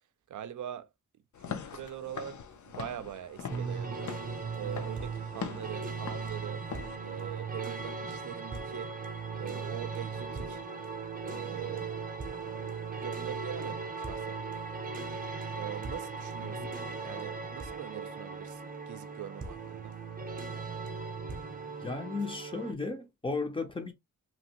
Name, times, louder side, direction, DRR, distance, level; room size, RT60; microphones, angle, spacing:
voice 1, 0.3-0.9 1.5-4.1 4.5-6.6 7.0-8.9 9.4-10.6 11.2-11.9 13.0-14.4 15.5-16.6 17.0-20.0, right 11 dB, 70° right, 0.5 m, -42 dB
Walk footsteps / Siren, 1.3-6.9, left 7 dB, 70° left, 0.6 m, -43 dB
sound 1, 3.5-22.7, right 4 dB, 25° right, 0.6 m, -38 dB
voice 2, 21.8-23.9, left 3 dB, 15° left, 0.5 m, -35 dB
2.9 x 2.6 x 2.8 m
wide cardioid pair, 175°, 31 cm